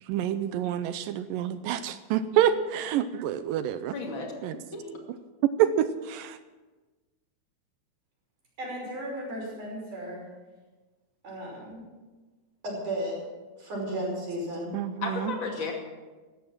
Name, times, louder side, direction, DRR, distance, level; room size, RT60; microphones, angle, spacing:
voice 1, 0.1-3.9 4.4-4.6 5.6-6.4 14.7-15.3, right 10 dB, 80° right, 12 dB, 2.0 m, -27 dB
voice 2, 3.9-4.3 4.7-5.0 15.0-15.7, left 4 dB, 35° left, 1 dB, 2.7 m, -33 dB
voice 3, 8.6-10.2 11.2-11.8 12.6-13.2 13.6-14.8, right 1 dB, 55° right, -3 dB, 6.8 m, -34 dB
16.0 x 12.5 x 6.1 m, 1.3 s
omnidirectional pair, 4.5 m